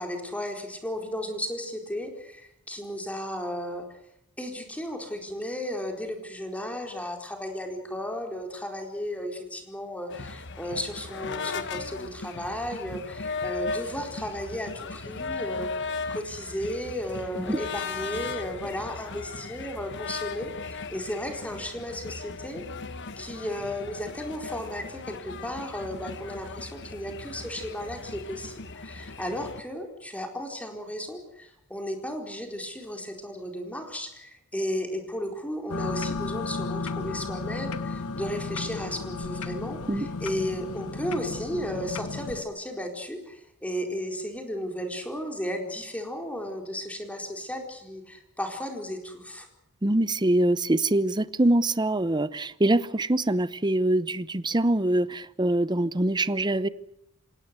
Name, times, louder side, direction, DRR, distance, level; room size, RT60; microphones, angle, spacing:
voice 1, 0.0-3.9 4.4-15.7 16.1-22.6 23.2-49.5, equal, 5° left, 3 dB, 4.3 m, -34 dB
sound 1, 10.1-29.6, left 4 dB, 55° left, 1.4 m, -37 dB
sound 2, 35.7-42.4, left 3 dB, 80° left, 1.3 m, -34 dB
voice 2, 49.8-56.7, right 1 dB, 20° right, 16 dB, 0.8 m, -24 dB
27.0 x 17.5 x 8.2 m, 0.83 s
head